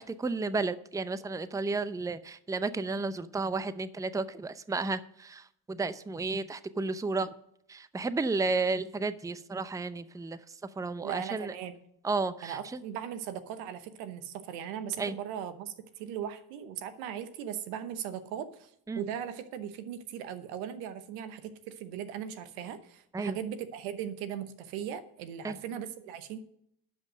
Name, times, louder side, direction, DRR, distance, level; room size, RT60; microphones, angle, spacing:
voice 1, 0.0-7.3 7.7-10.4 10.8-11.5 12.0-12.8 15.0-15.2 18.9-19.1 23.1-23.4 25.4-25.6, right 3 dB, 5° right, 15 dB, 0.5 m, -32 dB
voice 2, 11.0-11.7 12.4-26.4, right 9 dB, 90° right, 11 dB, 1.0 m, -38 dB
11.5 x 5.4 x 6.4 m, 0.72 s
supercardioid pair, 60°, 49 cm